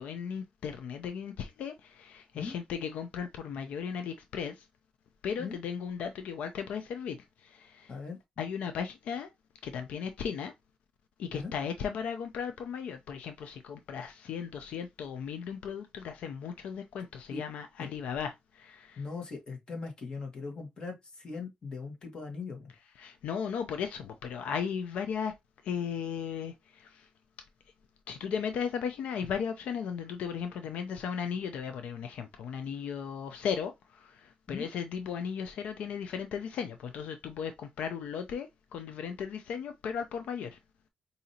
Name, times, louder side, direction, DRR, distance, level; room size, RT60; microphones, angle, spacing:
voice 1, 0.0-4.7 5.2-7.9 8.4-9.3 9.6-10.5 11.2-19.0 23.0-25.3 25.6-27.1 28.1-40.6, left 7 dB, 90° left, 0.5 m, -36 dB
voice 2, 19.0-22.7 34.5-34.7, left 4 dB, 40° left, 1.5 m, -40 dB
4.8 x 2.7 x 2.8 m
cardioid pair, 120°, 2 cm